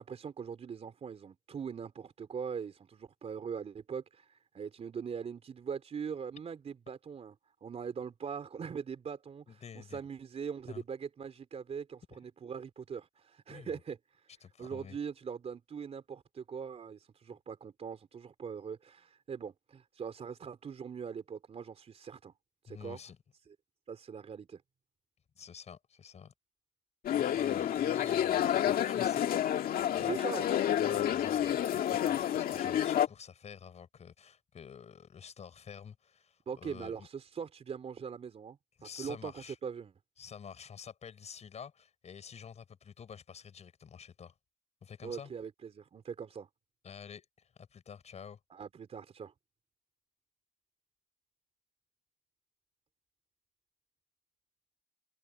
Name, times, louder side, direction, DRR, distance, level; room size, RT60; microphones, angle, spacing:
voice 1, 0.0-7.4 7.6-14.0 14.6-22.3 22.6-23.0 23.5-23.6 23.9-24.6 30.0-30.5 36.5-38.6 39.0-39.9 45.0-46.5 48.5-49.3, right 6 dB, 40° right, 3.8 m, -41 dB
voice 2, 9.5-10.0 10.7-10.8 13.5-13.7 14.4-15.0 22.7-23.2 25.4-26.3 27.1-29.3 29.7-30.2 30.8-37.1 38.8-39.6 40.2-44.3 44.8-45.3 46.8-48.4, left 7 dB, 40° left, 6.7 m, -48 dB
sound 1, 27.0-33.1, left 10 dB, 60° left, 2.1 m, -29 dB
cardioid pair, 110°, 17 cm